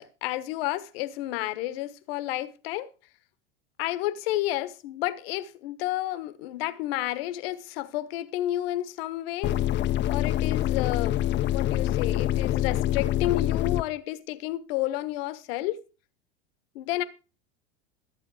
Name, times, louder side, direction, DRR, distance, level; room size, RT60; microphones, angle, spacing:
voice 1, 0.0-2.9 3.8-9.6 10.1-11.2 11.5-15.8 16.7-17.0, left 15 dB, 65° left, 1.2 m, -31 dB
sound 1, 9.4-13.8, left 12 dB, 35° left, 0.7 m, -25 dB
14.0 x 7.8 x 4.8 m
hypercardioid pair, 90°, 31 cm